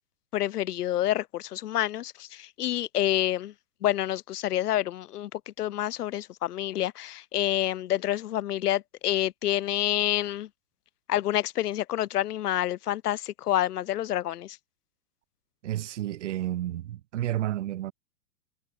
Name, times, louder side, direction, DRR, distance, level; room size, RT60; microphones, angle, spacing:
voice 1, 0.3-3.5 3.8-10.5 11.1-14.6, left 13 dB, 70° left, 1.1 m, -28 dB
voice 2, 15.6-17.9, right 13 dB, 50° right, 1.1 m, -31 dB
supercardioid pair, 180°, 47 cm